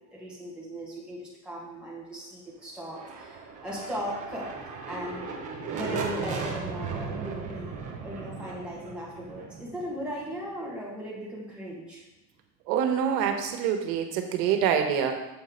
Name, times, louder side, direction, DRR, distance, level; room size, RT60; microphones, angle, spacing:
voice 1, 0.1-4.5 4.9-12.0, equal, ahead, -6 dB, 1.5 m, -38 dB
sound 1, 2.8-10.6, right 5 dB, 20° right, 0.3 m, -37 dB
voice 2, 12.7-15.2, right 8 dB, 90° right, 5 dB, 1.3 m, -26 dB
7.9 x 4.3 x 5.2 m, 0.97 s
cardioid pair, 180°, 48 cm